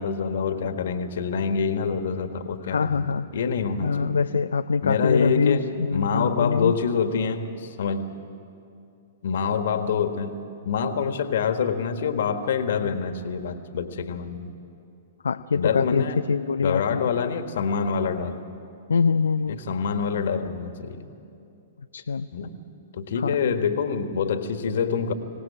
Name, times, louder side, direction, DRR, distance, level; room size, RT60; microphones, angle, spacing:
voice 1, 0.0-4.2 4.8-8.1 9.2-10.4 10.6-14.5 15.5-16.2 16.6-18.4 19.5-21.1 22.3-22.6 22.9-25.1, left 6 dB, 65° left, 8 dB, 1.6 m, -26 dB
voice 2, 2.6-3.3 3.8-6.7 15.2-17.0 18.9-19.6 21.9-22.3 23.2-23.4, left 5 dB, 80° left, 9 dB, 0.5 m, -24 dB
25.5 x 18.0 x 8.7 m, 2.6 s
hypercardioid pair, 115°, 0 cm